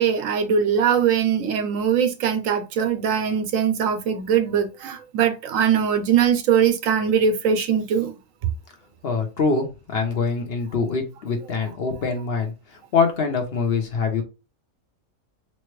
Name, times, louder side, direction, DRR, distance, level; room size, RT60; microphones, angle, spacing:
voice 1, 0.0-8.1, right 7 dB, 85° right, 1.0 m, -21 dB
voice 2, 9.0-14.2, left 4 dB, 55° left, 0.9 m, -24 dB
4.2 x 2.1 x 3.1 m
omnidirectional pair, 1.4 m